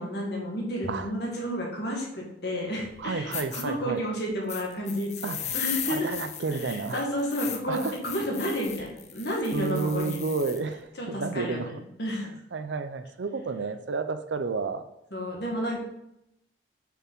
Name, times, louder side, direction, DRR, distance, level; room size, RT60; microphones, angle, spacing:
voice 1, 0.0-6.2 6.6-10.2 11.0-12.3 15.1-15.8, equal, 60° left, -2 dB, 1.9 m, -31 dB
sound 1, 2.9-3.0 3.3-3.6 4.5-10.6, left 8 dB, 35° left, 0.7 m, -37 dB
voice 2, 3.0-4.0 5.2-5.6 5.9-7.1 7.7-8.0 9.5-11.7 12.2-14.9, right 4 dB, 70° right, 10 dB, 0.5 m, -31 dB
6.8 x 4.7 x 3.9 m, 0.83 s
head